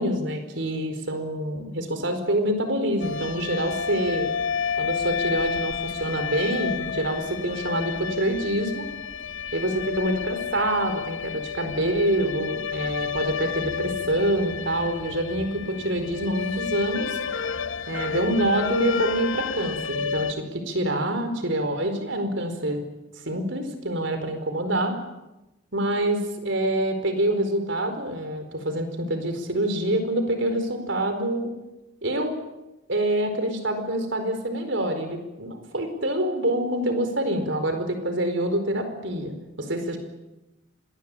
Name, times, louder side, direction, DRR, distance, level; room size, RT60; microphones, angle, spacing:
voice 1, 0.0-4.3 4.8-8.9 9.5-17.2 17.9-22.8 23.3-25.0 25.7-31.5 32.0-32.3 32.9-40.0, right 1 dB, 70° right, 7 dB, 4.7 m, -26 dB
sound 1, 3.0-20.3, left 6 dB, 85° left, 1.1 m, -30 dB
26.0 x 20.0 x 8.7 m, 0.99 s
head